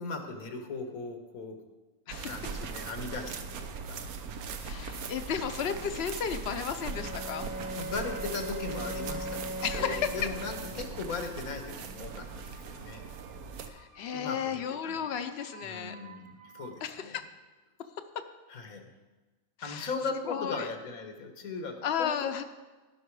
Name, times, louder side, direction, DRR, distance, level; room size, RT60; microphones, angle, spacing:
voice 1, 0.0-1.6 2.2-4.1 7.8-13.1 14.1-15.3 15.6-17.2 18.5-18.9 19.6-22.4, left 4 dB, 80° left, 5 dB, 1.7 m, -38 dB
voice 2, 2.1-2.4 4.6-7.5 9.6-10.1 13.7-15.9 16.8-17.2 18.1-18.2 19.6-19.9 20.3-20.7 21.8-22.4, left 8 dB, 55° left, 9 dB, 0.9 m, -34 dB
sound 1, 2.1-13.7, right 5 dB, 90° right, 1.3 m, -40 dB
sound 2, 4.7-16.9, right 5 dB, 55° right, 1.3 m, -55 dB
Bowed string instrument, 6.8-11.2, equal, 25° left, 0.6 m, -40 dB
16.5 x 5.7 x 4.8 m, 1.2 s
omnidirectional pair, 1.5 m